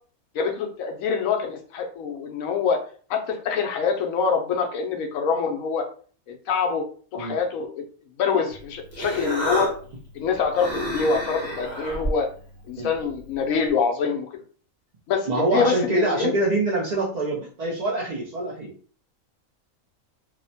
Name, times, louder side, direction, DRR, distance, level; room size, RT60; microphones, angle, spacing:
voice 1, 0.3-2.8 3.1-5.8 6.3-6.8 7.1-7.8 8.2-9.7 10.1-12.3 12.7-14.4 15.1-16.3, left 5 dB, 85° left, 3 dB, 1.0 m, -25 dB
Human voice, 8.5-13.7, right 1 dB, 10° left, 1.0 m, -32 dB
voice 2, 15.3-18.7, right 2 dB, 80° right, -2 dB, 0.3 m, -25 dB
2.9 x 2.1 x 2.6 m, 0.43 s
omnidirectional pair, 1.4 m